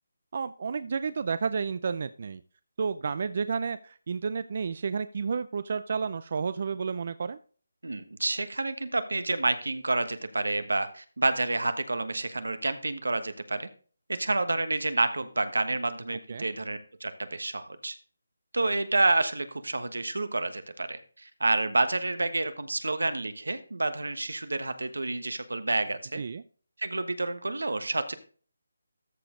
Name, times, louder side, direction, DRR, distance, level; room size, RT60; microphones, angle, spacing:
voice 1, 0.3-2.4 2.8-7.4 16.3-16.5 26.1-26.4, right 5 dB, 45° right, 14 dB, 0.5 m, -31 dB
voice 2, 7.8-13.7 14.1-17.9 18.5-26.2 26.8-28.1, right 2 dB, 85° right, 11 dB, 1.2 m, -29 dB
13.5 x 5.1 x 3.8 m, 0.40 s
figure-of-eight pair, 165°, 0 cm